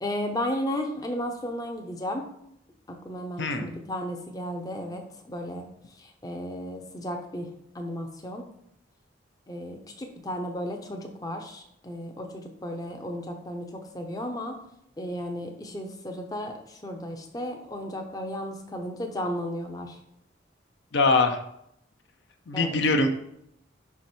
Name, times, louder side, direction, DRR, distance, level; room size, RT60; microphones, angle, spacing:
voice 1, 0.0-2.2 2.9-5.7 6.0-7.5 7.7-8.4 9.5-14.5 15.0-20.0 22.5-22.8, equal, 20° left, 3 dB, 0.6 m, -34 dB
voice 2, 3.4-3.7 20.9-21.4 22.5-23.1, left 3 dB, 65° left, 6 dB, 0.6 m, -22 dB
5.2 x 4.7 x 4.3 m, 0.74 s
head